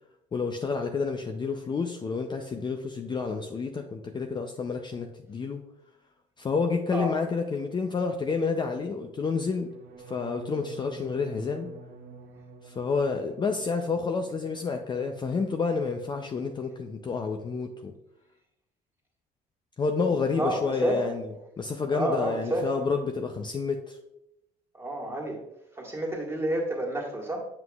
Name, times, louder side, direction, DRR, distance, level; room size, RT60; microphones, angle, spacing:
voice 1, 0.3-5.6 6.4-9.7 10.1-11.7 12.6-17.9 19.8-21.3 21.6-24.0, left 4 dB, 25° left, 4 dB, 0.5 m, -29 dB
sound 1, 9.6-15.5 15.8-16.3 16.6-17.0, right 4 dB, 60° right, 0.9 m, -49 dB
voice 2, 20.4-21.0 21.9-22.7 24.7-25.4 25.8-27.4, right 1 dB, 15° right, -2 dB, 1.7 m, -29 dB
7.6 x 5.8 x 2.3 m, 0.86 s
cardioid pair, 110°, 17 cm